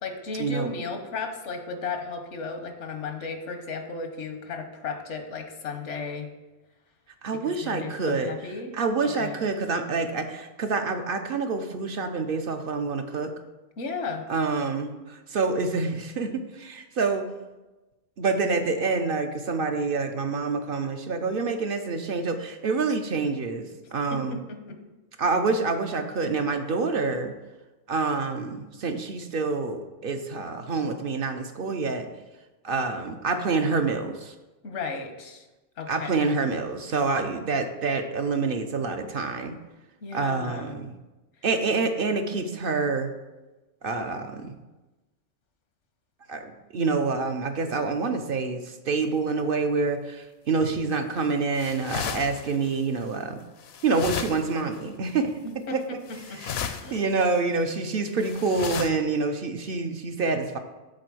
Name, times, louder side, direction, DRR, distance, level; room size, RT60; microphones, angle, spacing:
voice 1, 0.0-6.3 7.3-8.8 9.0-9.4 13.8-14.3 24.1-24.8 34.6-35.5 35.8-36.2 40.0-40.8 55.4-57.0, left 4 dB, 85° left, 5 dB, 1.3 m, -35 dB
voice 2, 7.2-8.3 8.7-13.3 14.3-17.3 18.2-24.4 25.2-27.3 27.9-32.1 32.6-34.3 35.9-39.6 40.1-41.0 41.4-43.1 43.8-44.6 46.3-53.4 53.8-55.3 55.7-55.8 56.3-60.6, right 4 dB, 60° right, 6 dB, 0.8 m, -27 dB
sound 1, 50.6-50.9 51.6-53.0 53.6-54.8 55.0-55.1 56.1-57.0 57.3-57.4 58.2-58.9, left 8 dB, 70° left, 0.8 m, -35 dB
7.6 x 4.1 x 6.1 m, 1.1 s
omnidirectional pair, 1.2 m